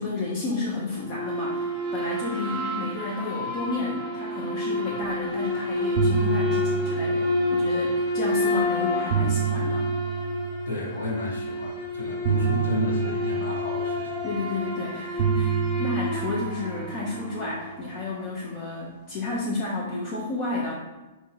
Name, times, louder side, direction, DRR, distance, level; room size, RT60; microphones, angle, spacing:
voice 1, 0.0-9.9 14.2-20.8, left 3 dB, 40° left, -4 dB, 0.7 m, -31 dB
sound 1, 1.0-17.6, left 2 dB, 10° right, 1.1 m, -29 dB
sound 2, 5.3-5.5 5.8-8.1 8.8-11.2 12.2-14.7 15.2-17.8, right 9 dB, 55° right, 0.4 m, -29 dB
voice 2, 10.7-14.6, left 2 dB, 85° left, -1 dB, 0.8 m, -32 dB
2.8 x 2.8 x 4.0 m, 1.1 s
hypercardioid pair, 135°, 0 cm